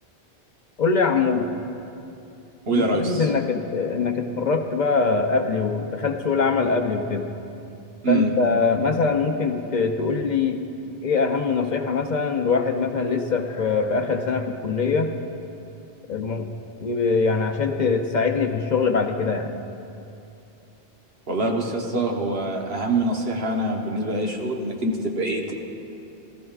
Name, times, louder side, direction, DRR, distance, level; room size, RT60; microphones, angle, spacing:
voice 1, 0.8-1.5 2.7-7.3 8.1-10.6 11.0-15.1 16.1-16.5 16.8-19.5, left 4 dB, 50° left, 5 dB, 0.7 m, -23 dB
voice 2, 2.7-3.3 8.0-8.3 21.3-25.5, right 2 dB, 75° right, 1 dB, 1.3 m, -24 dB
19.0 x 14.0 x 2.4 m, 2.7 s
omnidirectional pair, 1.0 m